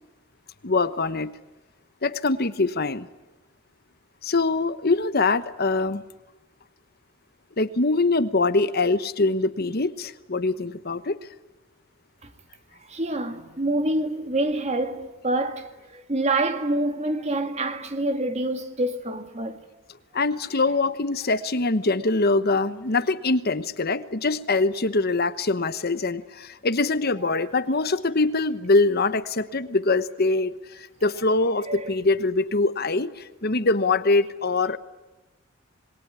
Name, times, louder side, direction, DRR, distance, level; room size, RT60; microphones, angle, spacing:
voice 1, 0.6-1.3 2.0-3.1 4.2-6.0 7.6-11.2 20.1-34.8, left 3 dB, 45° left, 1.1 m, -23 dB
voice 2, 12.9-19.6 27.3-27.4 31.7-31.9, right 2 dB, 30° right, 2.4 m, -27 dB
26.5 x 22.0 x 9.7 m
head